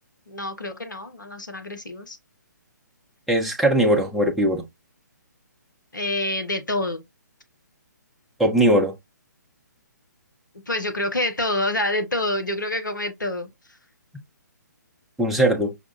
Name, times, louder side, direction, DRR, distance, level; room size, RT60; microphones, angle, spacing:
voice 1, 0.3-2.2 5.9-7.0 10.7-13.5, left 1 dB, 80° left, 1.2 m, -27 dB
voice 2, 3.3-4.6 8.4-9.0 15.2-15.7, right 1 dB, ahead, 0.7 m, -20 dB
5.6 x 2.4 x 2.6 m
figure-of-eight pair, 135°, 10 cm